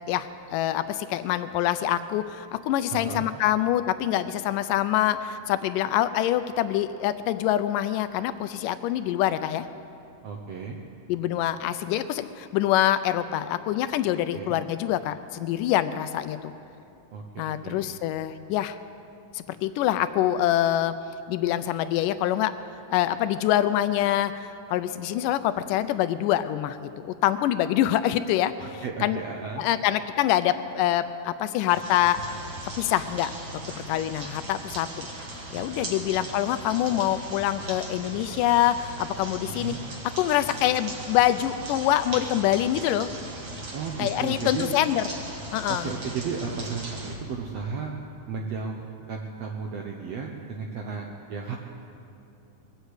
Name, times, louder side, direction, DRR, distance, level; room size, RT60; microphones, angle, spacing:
voice 1, 0.1-9.7 11.1-16.5 17.4-18.8 19.3-20.9 21.3-22.5 22.9-29.2 29.6-32.2 32.8-33.3 33.8-35.1 35.5-39.8 40.2-43.1 44.0-45.0 45.5-45.9, left 12 dB, 80° left, 12 dB, 2.1 m, -25 dB
voice 2, 2.9-3.3 10.2-10.8 14.3-14.6 17.1-17.9 28.6-29.6 35.8-36.2 36.4-36.6 39.5-39.8 43.7-44.7 45.7-47.9 48.3-51.6, right 5 dB, 70° right, 1 dB, 1.7 m, -34 dB
sound 1, 31.7-47.1, right 1 dB, 40° right, 2.0 m, -38 dB
21.0 x 8.2 x 8.0 m, 2.7 s
omnidirectional pair, 3.9 m